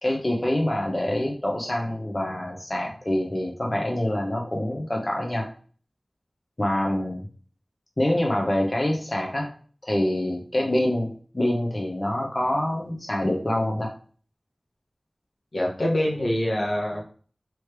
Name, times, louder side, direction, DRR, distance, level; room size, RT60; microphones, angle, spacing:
voice 1, 0.0-5.5 6.6-7.3 8.0-9.5 9.8-13.9, left 1 dB, 35° left, 0 dB, 0.9 m, -26 dB
voice 2, 15.5-17.0, left 1 dB, 80° left, -3 dB, 1.3 m, -25 dB
3.2 x 3.1 x 4.7 m, 0.43 s
wide cardioid pair, 45°, 0 cm